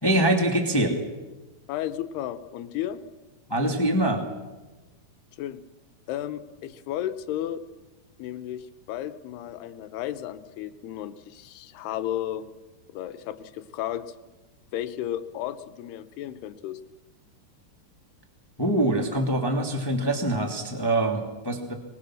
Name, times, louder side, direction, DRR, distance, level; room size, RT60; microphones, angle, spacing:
voice 1, 0.0-1.0 3.5-4.2 18.6-21.7, right 1 dB, 10° left, 3 dB, 1.6 m, -24 dB
voice 2, 1.7-3.0 5.4-5.6 6.1-7.6 8.2-12.5 12.9-14.1 14.7-16.8, left 12 dB, 85° left, 12 dB, 3.0 m, -33 dB
25.0 x 21.5 x 6.3 m, 1.1 s
omnidirectional pair, 4.6 m